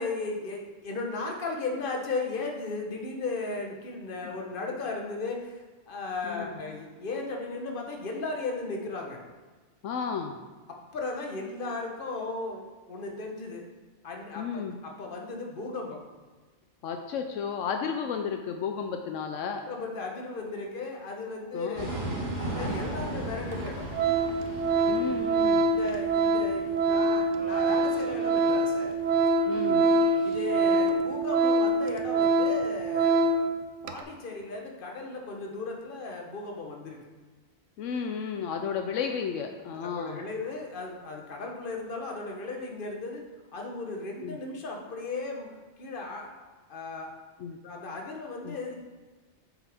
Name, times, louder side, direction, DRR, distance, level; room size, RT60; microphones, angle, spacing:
voice 1, 0.0-9.2 10.9-13.6 14.0-16.0 19.7-21.9 22.5-23.8 25.0-25.2 25.7-28.9 30.2-33.5 33.8-37.0 39.8-43.2 43.5-47.1 47.6-48.7, left 3 dB, 45° left, 1 dB, 1.2 m, -36 dB
voice 2, 9.8-10.4 14.4-14.8 16.8-19.6 21.5-21.9 24.9-25.7 29.5-29.9 37.8-40.2 44.2-44.4 47.4-47.6 48.4-48.6, left 6 dB, 80° left, 5 dB, 0.9 m, -33 dB
sound 1, 21.7-31.0, right 1 dB, 35° right, 2.2 m, -38 dB
Organ, 22.9-23.0 23.5-23.7 23.9-33.5 33.8-34.0, right 2 dB, 75° right, 0.9 m, -25 dB
7.5 x 6.2 x 3.5 m, 1.3 s
omnidirectional pair, 1.3 m